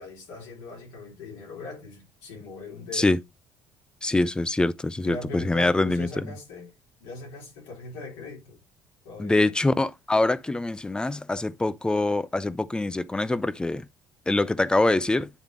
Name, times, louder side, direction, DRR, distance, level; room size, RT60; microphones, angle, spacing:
voice 1, 0.0-3.1 5.0-6.7 7.0-8.6 9.0-9.5, left 3 dB, 90° left, 3.6 m, -40 dB
voice 2, 4.0-6.3 9.2-13.9 14.3-15.3, left 2 dB, 10° left, 0.6 m, -24 dB
9.2 x 3.4 x 3.8 m
cardioid pair, 95°, 8 cm